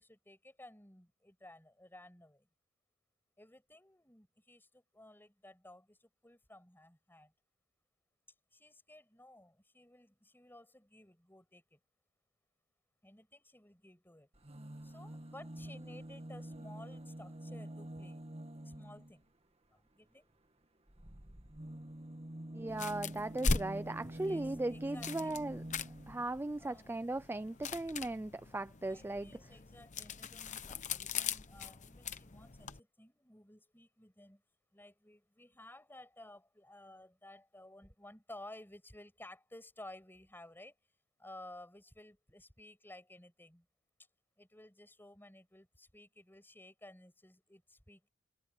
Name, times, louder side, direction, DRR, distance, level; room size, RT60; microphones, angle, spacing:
voice 1, 0.0-2.5 3.4-7.3 8.5-11.8 13.0-14.3 14.8-18.2 18.7-19.2 19.7-20.3 21.7-21.8 24.2-25.4 26.6-26.9 28.8-34.4 34.7-40.8 41.2-43.7 44.4-48.1, left 1 dB, 10° left, 6.9 m, -55 dB
sound 1, 14.3-19.2 20.9-26.3 27.3-27.4 27.6-27.7, right 1 dB, 30° right, 1.9 m, -47 dB
voice 2, 22.5-25.6 26.1-29.3, right 2 dB, 10° right, 0.3 m, -38 dB
sound 2, 22.7-32.8, left 4 dB, 35° left, 1.0 m, -41 dB
head